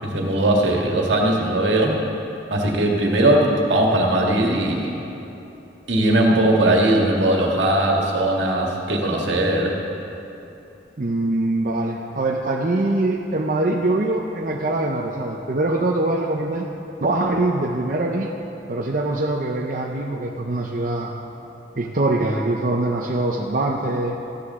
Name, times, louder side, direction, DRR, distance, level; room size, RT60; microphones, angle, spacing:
voice 1, 0.0-2.0 2.5-5.0 5.9-9.7, right 1 dB, 80° right, -1 dB, 1.8 m, -19 dB
voice 2, 11.0-16.7 17.0-18.3 18.7-21.2 21.8-24.2, right 2 dB, 45° right, 0 dB, 0.6 m, -23 dB
14.5 x 13.0 x 3.7 m, 3.0 s
head